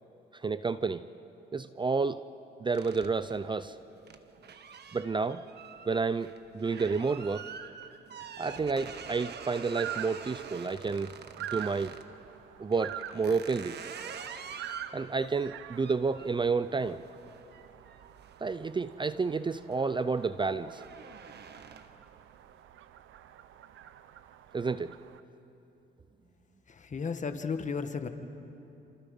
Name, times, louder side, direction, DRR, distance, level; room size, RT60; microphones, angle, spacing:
voice 1, 0.3-1.1 1.5-2.3 2.6-3.8 4.9-5.5 5.9-7.5 8.4-11.1 11.5-11.9 12.6-13.8 14.9-17.0 18.4-20.8 24.5-25.0, right 4 dB, 25° right, 14 dB, 0.5 m, -30 dB
sound 1, 2.7-12.1 12.7-19.2 19.6-19.9 20.2-22.1, right 6 dB, 55° right, 1.4 m, -47 dB
sound 2, 8.4-25.2, right 10 dB, 80° right, 0.8 m, -46 dB
voice 2, 26.7-28.1, left 5 dB, 40° left, 7 dB, 1.6 m, -34 dB
28.5 x 27.5 x 5.4 m, 2.9 s
cardioid pair, 90°, 20 cm